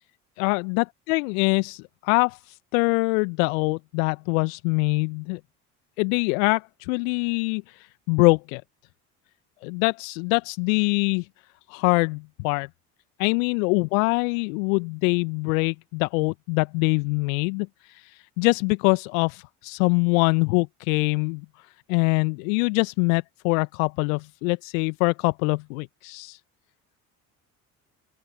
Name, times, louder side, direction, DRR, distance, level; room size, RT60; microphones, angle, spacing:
voice 1, 0.4-5.4 6.0-8.6 9.6-11.3 11.7-12.7 13.2-21.4 21.9-26.4, left 31 dB, 65° left, 1.2 m, -24 dB
open air
figure-of-eight pair, 55°, 44 cm